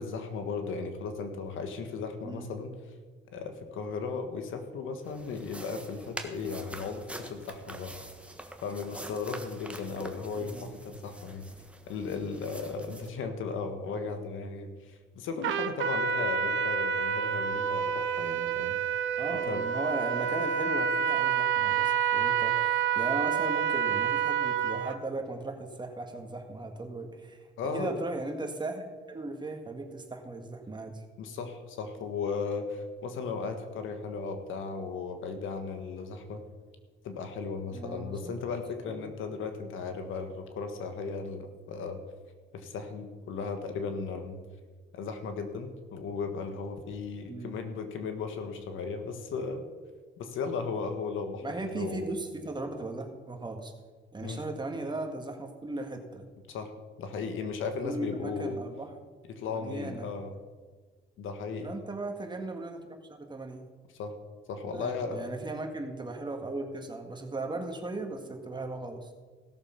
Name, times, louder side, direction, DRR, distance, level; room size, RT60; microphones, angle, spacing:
voice 1, 0.0-2.8 3.3-7.9 8.6-11.5 11.9-18.7 19.3-19.6 27.6-28.0 31.2-36.4 37.0-42.0 42.5-44.4 44.9-49.6 50.2-52.1 54.2-54.4 56.5-56.7 57.0-58.6 59.3-60.3 61.2-61.7 63.9-64.1 64.5-65.2, left 4 dB, 80° left, 7 dB, 1.5 m, -36 dB
sound 1, 5.0-13.1, right 1 dB, 5° right, 1.4 m, -45 dB
voice 2, 10.4-10.7 19.2-31.0 37.7-38.4 38.9-39.1 47.3-47.6 51.4-53.7 54.1-56.2 57.8-59.1 59.5-60.1 61.6-63.7 64.7-69.1, right 2 dB, 20° right, 4 dB, 1.9 m, -37 dB
Trumpet, 15.4-25.0, right 7 dB, 75° right, 0.8 m, -28 dB
16.5 x 6.7 x 5.8 m, 1.4 s
cardioid pair, 90°, 20 cm